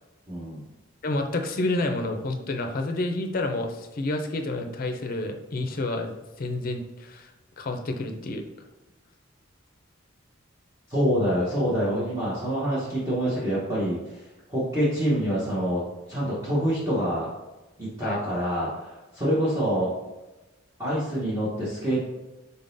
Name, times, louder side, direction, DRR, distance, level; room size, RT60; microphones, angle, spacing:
voice 1, 0.3-0.6 10.9-14.2 14.5-15.8 16.1-17.3 17.8-19.9 20.8-22.0, equal, 15° right, -9 dB, 0.9 m, -26 dB
voice 2, 1.0-8.5 18.0-18.2, left 2 dB, 45° left, 5 dB, 0.5 m, -29 dB
3.9 x 3.7 x 2.6 m, 1.1 s
head